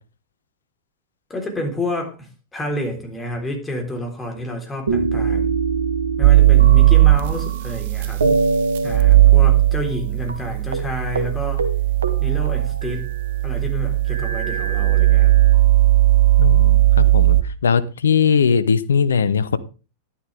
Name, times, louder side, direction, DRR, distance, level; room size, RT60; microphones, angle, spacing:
voice 1, 1.3-5.6 6.2-8.2 8.8-11.7 12.2-13.1 13.4-15.4, left 1 dB, 15° left, 3.7 m, -29 dB
sound 1, 4.9-7.8 8.2-10.0 10.3-10.4 10.7-10.9 11.2-11.3 11.6-13.3 14.1-15.6 16.4-17.3, right 4 dB, 70° right, 1.3 m, -25 dB
sound 2, 6.2-17.4, right 16 dB, 55° right, 0.8 m, -16 dB
voice 2, 16.4-19.6, left 6 dB, 70° left, 0.8 m, -19 dB
11.0 x 9.9 x 3.4 m
figure-of-eight pair, 90°, 0 cm